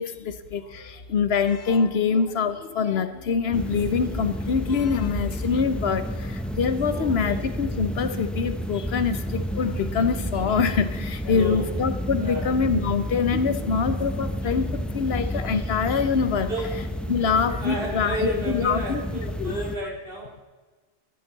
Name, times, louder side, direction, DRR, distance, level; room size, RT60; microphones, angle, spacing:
voice 1, 0.0-16.5 17.1-19.0 19.4-19.6, left 6 dB, 70° left, 11 dB, 1.0 m, -25 dB
sound 1, 3.5-19.8, equal, ahead, 0.5 m, -31 dB
voice 2, 6.9-7.4 11.3-11.7 12.2-12.6 16.5-16.7 17.3-20.3, right 2 dB, 60° right, -1 dB, 2.7 m, -32 dB
12.5 x 12.0 x 4.0 m, 1.3 s
omnidirectional pair, 1.1 m